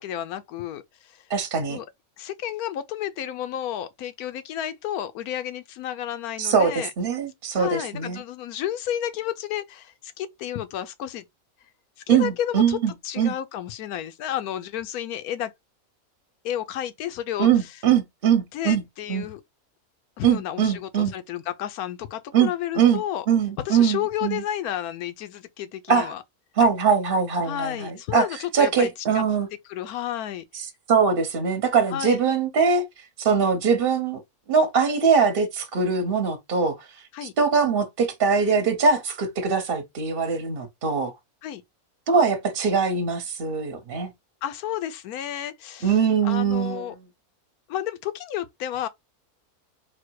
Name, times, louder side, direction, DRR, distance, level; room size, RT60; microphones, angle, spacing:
voice 1, 0.0-1.3 1.7-1.9 2.2-6.9 7.5-11.2 12.1-12.8 13.0-15.5 16.4-17.7 18.5-19.4 20.2-23.3 23.6-26.2 27.4-29.2 29.7-30.6 31.9-32.2 37.1-37.3 41.4-41.6 44.4-46.0 46.2-46.9 47.7-48.9, left 11 dB, 85° left, 1.1 m, -31 dB
voice 2, 1.3-1.8 6.4-8.2 12.1-13.3 17.4-18.8 19.1-19.3 20.2-21.1 22.3-23.0 23.3-24.4 25.9-26.1 26.6-28.3 28.5-29.5 30.9-32.9 33.2-34.2 34.5-36.8 37.4-41.1 42.1-44.1 45.8-46.9, right 6 dB, 45° right, 1.0 m, -22 dB
4.1 x 2.2 x 4.6 m
omnidirectional pair, 1.5 m